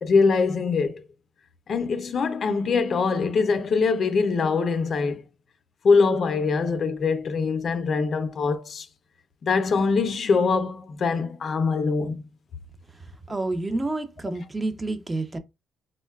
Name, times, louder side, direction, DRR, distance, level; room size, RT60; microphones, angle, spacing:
voice 1, 0.0-1.0 1.7-5.2 5.8-8.9 9.4-12.2, left 4 dB, 50° left, 0.4 m, -23 dB
voice 2, 13.3-15.4, right 2 dB, 20° right, 0.4 m, -29 dB
3.7 x 2.1 x 2.2 m
cardioid pair, 90°, 0 cm